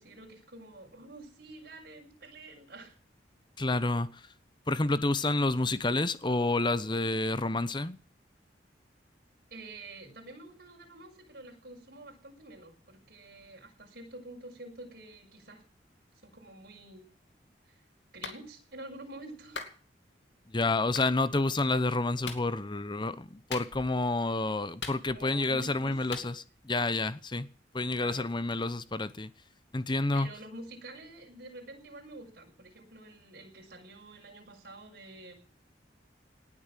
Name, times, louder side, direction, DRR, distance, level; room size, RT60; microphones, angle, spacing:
voice 1, 0.0-3.0 9.5-15.6 16.2-17.1 17.6-17.8 18.1-19.6 25.1-26.2 27.9-28.3 30.1-35.3, right 2 dB, 55° right, 6.5 m, -48 dB
voice 2, 3.6-4.2 4.7-8.0 20.5-26.3 26.6-27.5 27.7-29.3 29.7-30.3, left 2 dB, 25° left, 0.8 m, -29 dB
Clapping, 18.2-18.4 19.5-19.8 20.9-21.1 22.2-22.5 23.5-24.0 24.8-25.4 26.1-26.3, left 5 dB, 85° left, 2.6 m, -40 dB
19.0 x 8.7 x 7.6 m
head